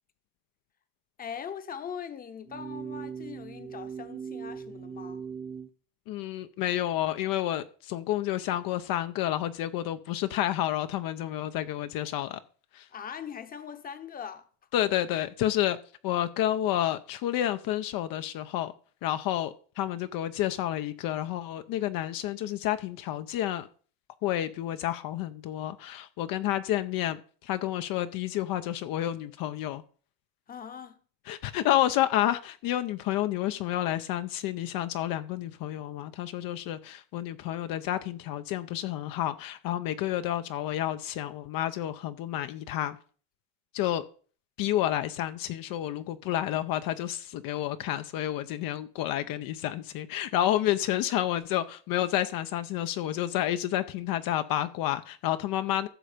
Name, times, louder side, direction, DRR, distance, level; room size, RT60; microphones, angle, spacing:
voice 1, 1.2-5.2 12.9-14.5 30.5-31.0, left 7 dB, 20° left, 1.0 m, -41 dB
sound 1, 2.4-5.7, right 6 dB, 15° right, 0.5 m, -39 dB
voice 2, 6.1-12.4 12.7-12.9 14.7-15.8 16.0-18.7 19.0-23.7 24.2-29.8 31.3-43.0 43.7-44.0 44.6-55.9, left 13 dB, 55° left, 0.8 m, -30 dB
15.0 x 6.4 x 5.1 m
cardioid pair, 155°, 42 cm